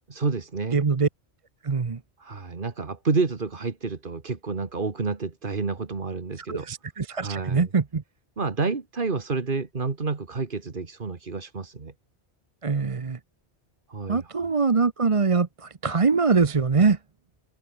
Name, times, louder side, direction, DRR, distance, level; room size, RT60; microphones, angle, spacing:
voice 1, 0.1-0.8 2.2-6.7 7.2-7.7 8.4-11.9 13.9-14.3, right 4 dB, 50° right, 1.9 m, -29 dB
voice 2, 0.7-1.1 1.6-2.0 6.5-8.0 12.6-13.2 14.1-17.0, right 4 dB, 35° right, 0.9 m, -23 dB
omnidirectional pair, 1.1 m